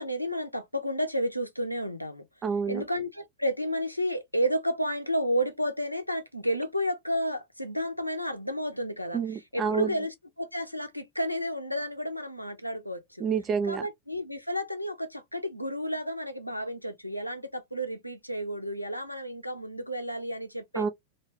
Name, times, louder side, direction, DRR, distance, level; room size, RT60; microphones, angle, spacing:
voice 1, 0.0-2.2 2.7-9.2 9.5-13.0 13.7-20.9, equal, 90° left, 0.5 m, -31 dB
voice 2, 2.4-2.8 9.1-9.9 13.2-13.9 20.7-20.9, right 6 dB, 25° right, 0.6 m, -28 dB
2.6 x 2.1 x 3.0 m
figure-of-eight pair, 90°, 0 cm